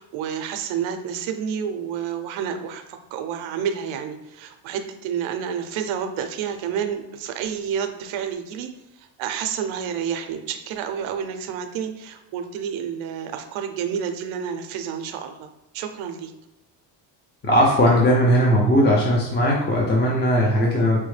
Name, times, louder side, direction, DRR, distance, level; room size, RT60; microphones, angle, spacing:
voice 1, 0.0-15.5 15.7-16.3, right 8 dB, 80° right, 6 dB, 0.6 m, -29 dB
voice 2, 17.4-21.0, equal, 20° left, -3 dB, 0.6 m, -18 dB
4.6 x 2.1 x 3.2 m, 0.94 s
cardioid pair, 110°, 47 cm